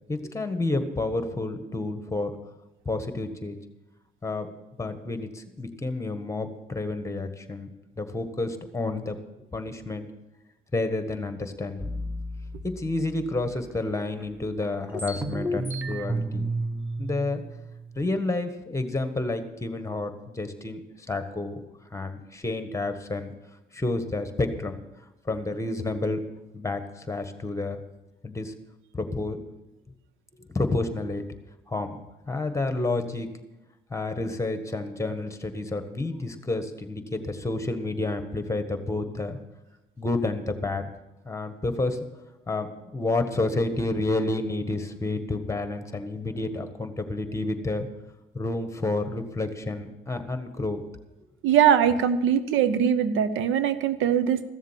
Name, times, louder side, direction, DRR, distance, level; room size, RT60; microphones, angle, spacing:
voice 1, 0.1-2.4 2.8-3.6 4.2-4.5 4.8-7.7 8.0-9.2 9.5-10.1 10.7-11.9 12.6-16.4 17.0-17.4 17.9-21.6 21.9-23.3 23.7-24.8 25.2-26.2 26.5-27.8 28.2-28.5 28.9-29.4 30.4-31.2 31.7-32.0 32.3-33.3 33.9-39.4 40.0-40.9 41.2-42.0 42.5-47.9 48.3-50.8, left 2 dB, 15° left, 8 dB, 1.5 m, -30 dB
sound 1, 11.8-13.7 14.2-14.3 14.6-18.1, right 1 dB, 10° right, 1.2 m, -32 dB
voice 2, 51.4-54.4, right 8 dB, 85° right, 13 dB, 0.8 m, -21 dB
14.5 x 7.4 x 7.4 m, 0.98 s
cardioid pair, 90°, 20 cm